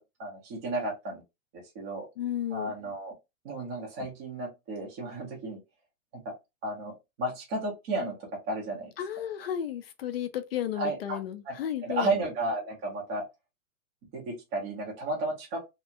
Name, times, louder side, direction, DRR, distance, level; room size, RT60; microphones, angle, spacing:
voice 1, 0.2-1.2 1.5-2.1 2.5-3.1 3.4-5.6 6.2-6.3 6.6-8.9 10.8-11.2 11.4-13.2 14.1-15.6, right 2 dB, 15° right, 0.4 m, -33 dB
voice 2, 2.2-2.7 9.0-12.1, left 10 dB, 45° left, 0.4 m, -33 dB
2.7 x 2.2 x 2.5 m
hypercardioid pair, 155°, 41 cm